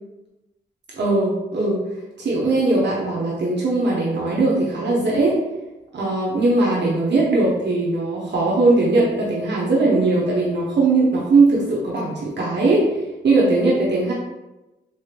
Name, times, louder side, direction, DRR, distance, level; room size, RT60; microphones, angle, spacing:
voice 1, 1.0-1.8 2.2-5.4 5.9-12.9 13.2-14.1, right 2 dB, 65° right, -5 dB, 0.7 m, -19 dB
3.1 x 2.8 x 2.4 m, 1.0 s
cardioid pair, 40°, 20 cm